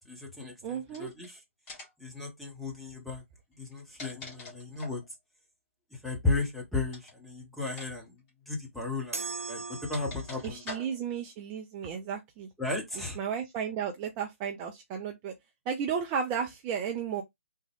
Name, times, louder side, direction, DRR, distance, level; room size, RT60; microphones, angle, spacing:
voice 1, 0.1-1.4 2.0-3.2 3.6-5.0 6.0-8.1 8.5-9.6 9.9-10.6 12.6-13.2, left 3 dB, ahead, 0.9 m, -34 dB
voice 2, 0.6-1.1 10.4-12.5 12.9-15.3 15.7-17.2, right 7 dB, 25° right, 0.5 m, -34 dB
sound 1, 0.9-1.3 1.7-2.1 3.6-5.1 6.9-7.2 7.7-7.9 8.2-8.3 9.3-11.2, left 3 dB, 20° left, 1.4 m, -45 dB
sound 2, 9.1-10.6, right 4 dB, 90° right, 0.8 m, -39 dB
3.6 x 2.1 x 3.4 m
figure-of-eight pair, 140°, 8 cm